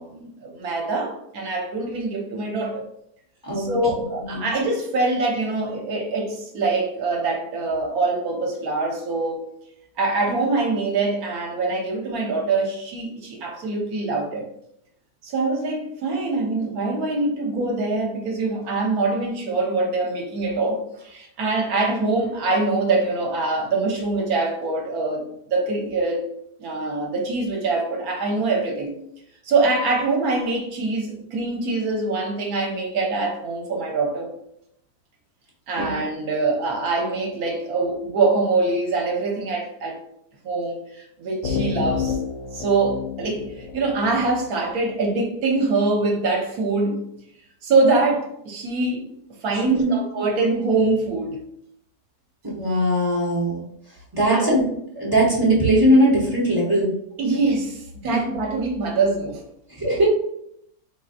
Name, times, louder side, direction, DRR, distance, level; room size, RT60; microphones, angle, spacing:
voice 1, 0.0-2.8 3.6-9.5 10.0-14.4 15.2-26.2 26.6-28.9 29.4-34.3 35.7-40.0 40.4-42.2 42.5-47.0 47.6-49.0 49.4-51.4 54.3-54.6 57.2-59.4, right 3 dB, 65° right, 0 dB, 1.1 m, -24 dB
sound 1, 41.4-45.0, left 6 dB, 75° left, 0.6 m, -30 dB
voice 2, 49.5-50.0 52.4-53.6 54.1-54.6 55.0-56.9 59.8-60.1, right 1 dB, 25° right, -5 dB, 0.5 m, -19 dB
4.4 x 2.5 x 2.4 m, 0.75 s
omnidirectional pair, 1.8 m